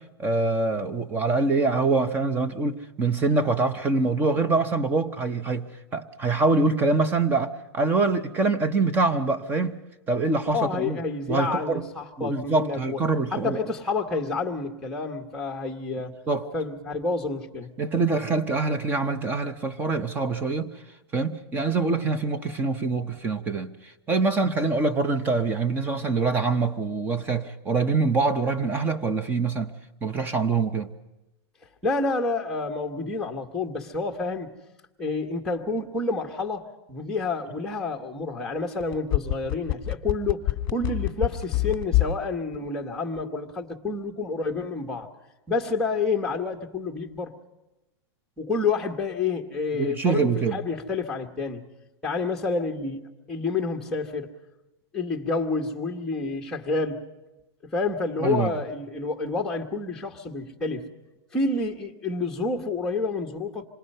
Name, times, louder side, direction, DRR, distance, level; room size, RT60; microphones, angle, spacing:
voice 1, 0.0-9.8 10.1-11.0 11.3-11.9 12.2-13.6 16.3-16.5 17.8-20.7 21.1-29.8 30.0-30.9 49.7-50.6 58.2-58.5, right 3 dB, 15° right, 0.9 m, -25 dB
voice 2, 10.5-13.0 13.3-16.1 16.5-17.7 31.8-34.5 35.0-40.4 40.7-45.1 45.5-47.3 48.4-51.7 52.0-54.3 54.9-57.0 57.7-60.9 61.3-63.7, left 3 dB, 5° left, 1.5 m, -29 dB
sound 1, 38.8-42.2 42.5-42.6, left 18 dB, 30° left, 1.8 m, -24 dB
26.5 x 20.5 x 5.6 m
supercardioid pair, 160°, 14 cm